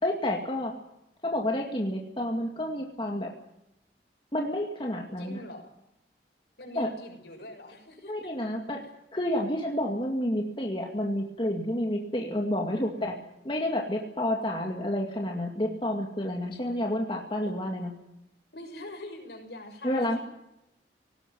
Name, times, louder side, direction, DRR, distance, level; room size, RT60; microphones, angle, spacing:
voice 1, 0.0-0.7 1.2-3.3 4.3-5.4 6.8-6.9 8.1-8.8 9.1-13.1 13.4-17.9 19.8-20.2, left 1 dB, 30° left, 1 dB, 2.2 m, -29 dB
voice 2, 5.2-5.7 6.6-8.1 8.8-8.9 12.7-13.3 18.5-20.2, left 1 dB, 70° left, 4 dB, 6.5 m, -44 dB
18.5 x 18.0 x 9.3 m, 0.86 s
head